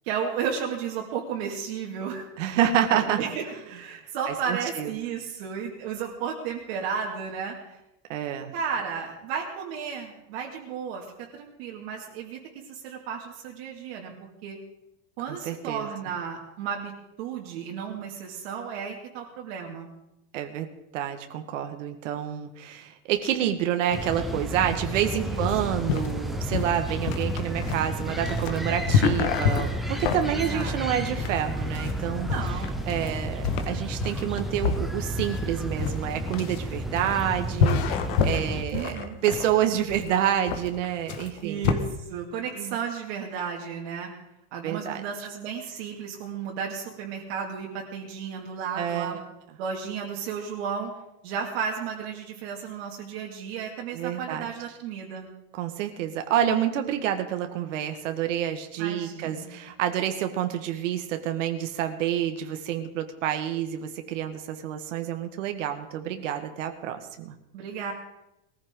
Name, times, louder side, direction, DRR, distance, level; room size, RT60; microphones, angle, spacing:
voice 1, 0.0-2.6 2.9-7.8 8.5-11.1 11.3-14.1 14.4-14.6 15.2-16.9 17.2-19.9 25.2-25.5 30.3-30.8 32.3-32.8 38.7-39.2 41.4-44.1 44.5-49.2 49.6-51.0 51.2-55.3 58.8-59.5 67.5-67.9, right 6 dB, 55° right, -1 dB, 2.4 m, -33 dB
voice 2, 2.4-3.2 4.3-4.9 8.1-8.5 15.3-15.9 20.3-32.3 32.9-41.7 42.6-42.8 44.6-45.0 48.8-49.2 53.9-54.4 55.5-67.3, right 10 dB, 90° right, 6 dB, 1.6 m, -28 dB
sound 1, 23.9-38.6, right 1 dB, ahead, 0.6 m, -32 dB
sound 2, 25.4-41.7, left 6 dB, 60° left, 1.5 m, -28 dB
20.0 x 14.5 x 3.8 m, 0.88 s
supercardioid pair, 175°, 37 cm